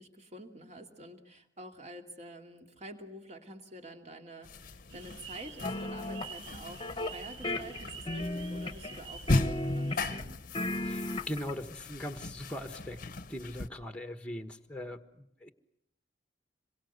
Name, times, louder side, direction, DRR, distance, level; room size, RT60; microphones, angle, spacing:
voice 1, 0.0-10.4, right 1 dB, 35° right, 4 dB, 2.6 m, -48 dB
sound 1, 4.4-13.7, left 2 dB, 45° left, 0.9 m, -38 dB
sound 2, 4.9-10.2, right 6 dB, 70° right, 1.4 m, -48 dB
sound 3, 5.6-6.3 6.8-7.2 7.4-9.0 9.3-10.2 10.5-11.5, left 1 dB, 25° left, 1.2 m, -34 dB
voice 2, 10.8-13.0 13.3-15.5, left 1 dB, 5° left, 7 dB, 1.3 m, -40 dB
26.5 x 23.0 x 8.0 m, 0.74 s
head